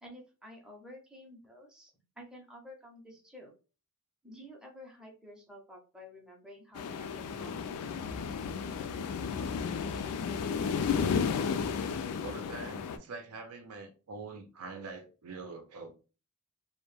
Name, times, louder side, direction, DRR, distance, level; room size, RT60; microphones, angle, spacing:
voice 1, 0.0-3.5 4.2-7.6, left 1 dB, 5° right, 0.5 m, -51 dB
sound 1, 6.8-13.0, left 6 dB, 75° left, 0.3 m, -33 dB
voice 2, 12.2-15.9, right 4 dB, 85° right, 0.6 m, -44 dB
2.1 x 2.0 x 3.1 m
head